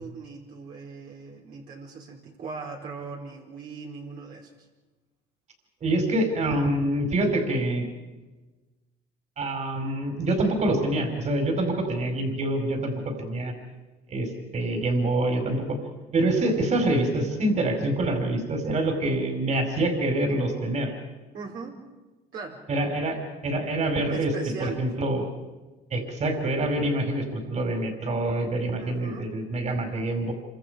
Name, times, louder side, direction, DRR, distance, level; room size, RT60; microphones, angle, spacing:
voice 1, 0.0-4.5 21.3-21.8 22.3-22.6 24.1-24.9 28.8-29.3, right 4 dB, 65° right, -2 dB, 4.6 m, -40 dB
voice 2, 5.8-7.9 9.4-13.5 14.1-15.8 16.1-20.9 22.7-23.2 23.4-24.3 24.6-25.3 25.9-30.3, right 1 dB, 45° right, 4 dB, 5.1 m, -26 dB
27.5 x 25.5 x 5.2 m, 1.2 s
cardioid pair, 110°, 17 cm